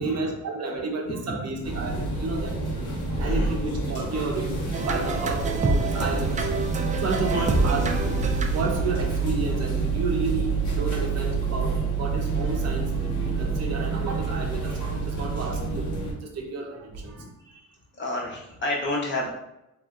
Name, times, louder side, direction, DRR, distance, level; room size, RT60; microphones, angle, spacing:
voice 1, 0.0-2.6 3.2-8.1 8.5-15.9 16.2-17.2, right 3 dB, 55° right, 1 dB, 0.7 m, -32 dB
voice 2, 1.1-1.9 3.2-3.5 7.3-7.5 17.1-17.6 18.0-19.3, left 1 dB, 40° left, -3 dB, 1.0 m, -31 dB
sound 1, 1.6-16.1, right 4 dB, 75° left, 1.0 m, -27 dB
sound 2, 4.7-8.9, right 3 dB, 25° right, 0.3 m, -28 dB
3.3 x 2.7 x 2.5 m, 0.91 s
cardioid pair, 90°, 30 cm